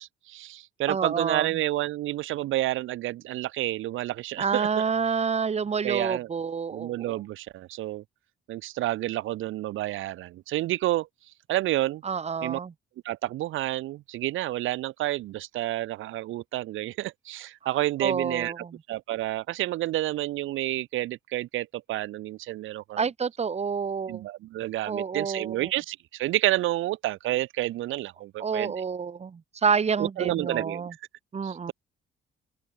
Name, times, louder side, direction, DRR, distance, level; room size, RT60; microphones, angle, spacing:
voice 1, 0.0-4.8 5.8-6.3 6.7-8.0 8.5-11.1 11.5-12.0 12.4-12.6 13.0-23.0 24.1-28.7 30.0-30.9 31.4-31.7, right 15 dB, 85° right, 1.1 m, -30 dB
voice 2, 0.9-1.5 4.4-7.2 12.0-12.7 17.6-17.7 18.0-18.8 23.0-24.2 24.8-25.7 28.4-30.9 31.3-31.7, right 6 dB, 35° right, 1.1 m, -28 dB
open air
cardioid pair, 90°, 20 cm